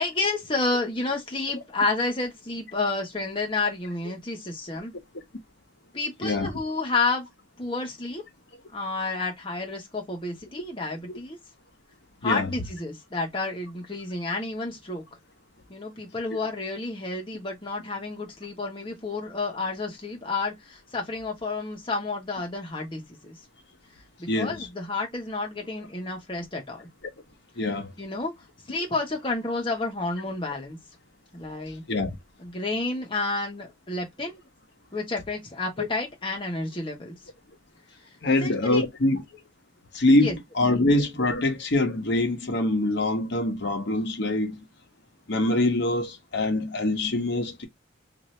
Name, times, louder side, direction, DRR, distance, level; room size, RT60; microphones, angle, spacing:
voice 1, 0.0-4.9 5.9-7.3 7.6-8.2 8.7-11.4 12.2-15.0 15.7-23.4 24.2-26.9 28.0-28.3 28.7-30.8 31.3-31.8 32.4-34.4 34.9-37.1 38.3-38.8 40.1-40.3, left 3 dB, 25° left, 1.0 m, -30 dB
voice 2, 24.3-24.7 27.6-27.9 31.9-32.2 35.8-35.9 38.2-39.2 39.9-44.6 45.3-47.6, left 2 dB, 60° left, 0.9 m, -24 dB
2.7 x 2.6 x 3.1 m
head